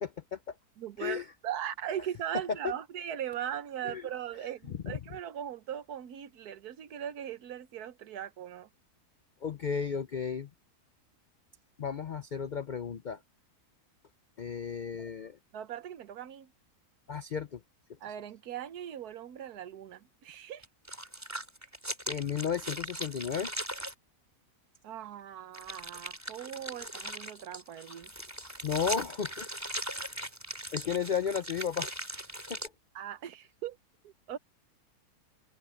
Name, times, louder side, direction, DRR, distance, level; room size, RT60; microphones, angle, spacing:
voice 1, 0.0-0.6 1.0-1.2 2.6-2.7 3.8-4.0 4.7-4.9 9.4-10.5 11.8-13.2 14.4-15.4 17.1-17.6 22.1-23.5 28.6-29.5 30.7-31.9 32.5-32.6, left 7 dB, 65° left, 0.4 m, -33 dB
voice 2, 0.8-8.7 15.5-16.5 18.0-20.7 24.8-28.1 32.9-33.8 34.0-34.4, right 10 dB, 80° right, 1.4 m, -39 dB
sound 1, 20.6-23.9 25.5-32.7, right 1 dB, 10° right, 3.0 m, -39 dB
open air
omnidirectional pair, 1.6 m